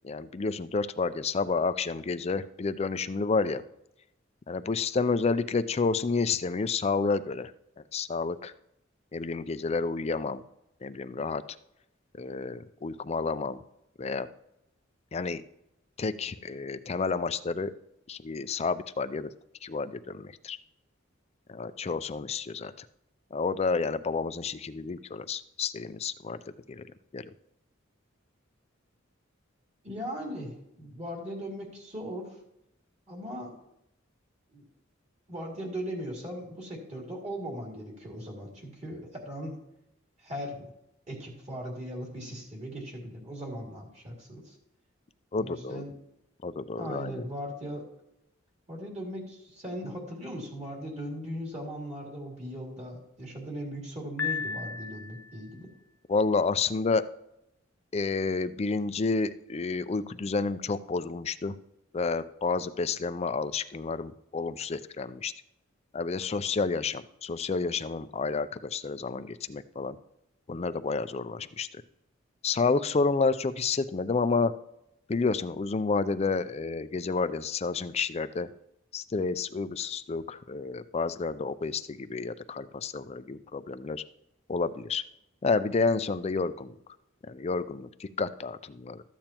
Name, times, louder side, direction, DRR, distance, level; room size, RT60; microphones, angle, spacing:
voice 1, 0.0-3.6 4.5-7.5 7.9-8.5 9.1-10.4 10.8-11.4 12.2-13.6 14.0-14.3 15.1-15.4 16.0-17.7 18.1-19.3 19.6-20.6 21.5-22.9 23.3-26.4 26.7-26.9 27.1-27.3 45.3-45.8 46.4-47.2 56.1-57.0 57.9-61.5 61.9-65.3 65.9-70.0 70.5-71.8 72.4-74.5 75.1-78.5 78.9-84.0 84.5-85.0 85.4-86.7 87.3-89.0, left 4 dB, 30° left, 13 dB, 0.4 m, -30 dB
voice 2, 29.8-32.3 33.1-33.5 34.5-34.7 35.3-39.6 40.2-40.7 41.1-44.6 45.4-46.0 46.8-47.9 48.7-55.7, equal, 35° right, -1 dB, 2.5 m, -38 dB
Piano, 54.2-55.5, left 6 dB, 75° left, 1.1 m, -34 dB
13.5 x 8.7 x 2.9 m, 0.84 s
head